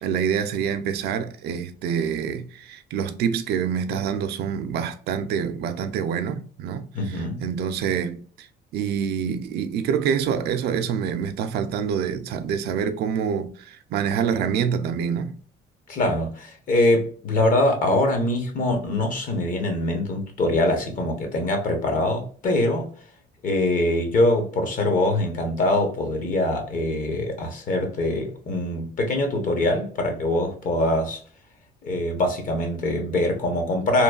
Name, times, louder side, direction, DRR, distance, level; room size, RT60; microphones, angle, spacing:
voice 1, 0.0-6.9 7.4-8.5 8.7-15.4, right 7 dB, 70° right, 0.4 m, -26 dB
voice 2, 6.9-7.4 15.9-22.9 23.4-31.2 31.8-34.0, left 1 dB, 50° left, 1.0 m, -23 dB
3.0 x 2.2 x 2.3 m
cardioid pair, 110°, 17 cm